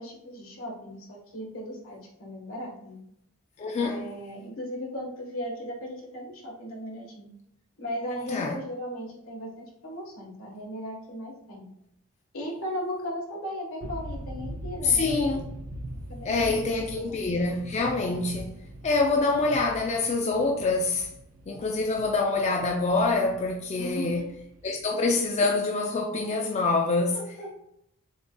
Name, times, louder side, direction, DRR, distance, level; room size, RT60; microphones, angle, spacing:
voice 1, 0.0-3.0 3.8-7.3 7.8-11.7 12.3-15.1 16.1-16.6 17.0-17.2 23.8-24.3 27.1-27.5, equal, 70° left, 1.4 m, -37 dB
voice 2, 3.6-4.1 8.3-8.5 14.8-15.4 16.2-18.5 18.8-21.1 21.5-24.3 24.6-27.2, left 3 dB, 30° left, 0.4 m, -25 dB
sound 1, 13.8-25.3, right 1 dB, 85° right, 0.5 m, -41 dB
7.0 x 2.7 x 2.3 m
head